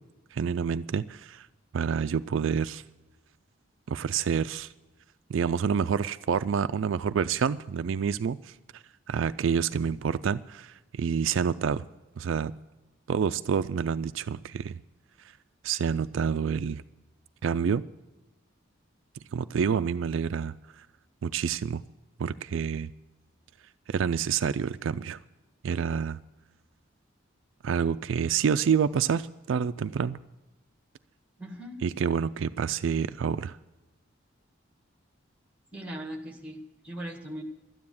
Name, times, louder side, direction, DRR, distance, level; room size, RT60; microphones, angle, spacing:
voice 1, 0.3-1.5 1.7-2.8 3.9-4.7 5.3-11.8 12.2-12.5 13.1-14.8 15.6-16.8 17.4-17.8 19.3-20.9 21.2-21.8 22.2-22.9 23.9-25.2 25.6-26.2 27.6-30.2 31.8-33.6, right 7 dB, 70° right, 12 dB, 0.3 m, -28 dB
voice 2, 31.4-31.8 35.7-37.4, right 1 dB, 5° right, 3 dB, 1.8 m, -39 dB
13.0 x 9.7 x 7.1 m, 1.1 s
head